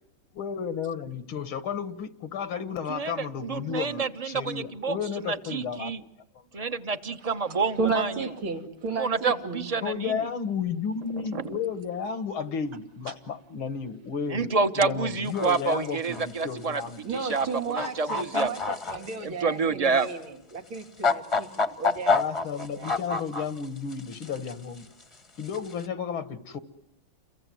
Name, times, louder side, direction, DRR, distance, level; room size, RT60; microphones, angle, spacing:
voice 1, 0.3-5.9 9.8-17.0 22.1-24.8 25.4-26.6, left 6 dB, 90° left, 11 dB, 2.5 m, -33 dB
voice 2, 2.9-6.0 6.5-8.1 9.0-10.3 11.3-11.6 14.3-16.8 17.1-18.5 19.2-20.1, right 4 dB, 25° right, 9 dB, 0.8 m, -28 dB
voice 3, 7.8-9.8 17.0-22.2 22.5-22.9, right 4 dB, 85° right, 3 dB, 3.4 m, -33 dB
sound 1, 15.3-15.6 16.0-16.4 17.2-17.5 17.8-19.1 20.0-20.1 20.7-23.6 23.9-24.5 25.5-25.7, left 4 dB, 20° left, 0.9 m, -27 dB
29.5 x 23.5 x 7.9 m, 0.82 s
omnidirectional pair, 2.2 m